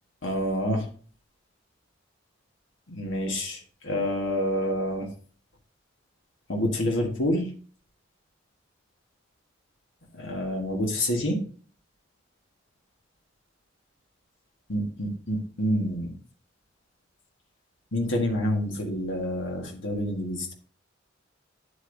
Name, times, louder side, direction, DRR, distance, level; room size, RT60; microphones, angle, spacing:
voice 1, 0.2-0.9 2.9-5.1 6.5-7.5 10.2-11.4 14.7-16.1 17.9-20.5, left 1 dB, 70° left, 1 dB, 1.5 m, -28 dB
8.9 x 8.2 x 2.6 m, 0.43 s
head